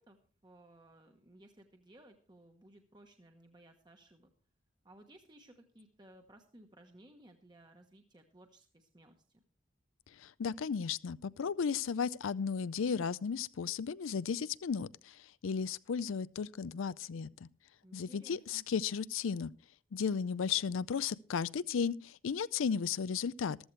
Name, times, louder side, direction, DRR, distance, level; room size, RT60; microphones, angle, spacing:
voice 1, 0.0-4.3 4.8-9.4 17.8-18.6, right 1 dB, 20° right, 1.0 m, -59 dB
voice 2, 10.2-17.5 17.9-19.5 19.9-23.6, left 6 dB, 85° left, 0.4 m, -35 dB
14.5 x 13.5 x 3.2 m
head